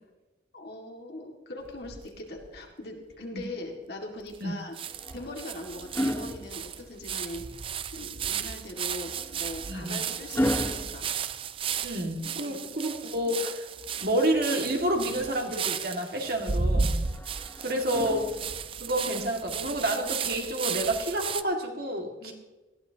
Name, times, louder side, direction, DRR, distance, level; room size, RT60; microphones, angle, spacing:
voice 1, 0.5-4.8 5.1-7.4 7.9-11.1 12.3-12.6 17.9-18.0 22.1-22.3, left 1 dB, 60° left, 1 dB, 2.1 m, -41 dB
sound 1, 1.7-2.6 3.1-3.2 3.4-3.5 4.3-4.4 4.8-21.4, right 6 dB, 30° right, 0.4 m, -34 dB
sound 2, 4.8-7.3 8.9-12.0 13.8-15.0 17.0-18.8 20.0-20.2, equal, 10° left, 0.9 m, -35 dB
voice 2, 9.7-10.0 11.8-13.7 14.0-16.9 17.6-18.2 18.8-22.3, right 1 dB, 55° right, 1 dB, 2.1 m, -29 dB
19.0 x 14.5 x 2.9 m, 1.1 s
head